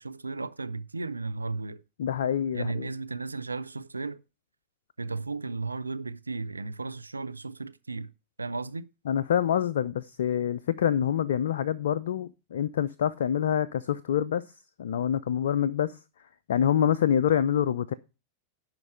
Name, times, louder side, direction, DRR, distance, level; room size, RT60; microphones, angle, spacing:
voice 1, 0.0-1.8 2.5-4.2 5.0-8.1 8.4-8.9, right 3 dB, 80° right, 0.5 m, -34 dB
voice 2, 2.0-2.9 9.1-14.4 14.8-16.0 16.5-17.9, left 9 dB, 60° left, 0.5 m, -26 dB
11.0 x 4.5 x 6.3 m
figure-of-eight pair, 90°, 0 cm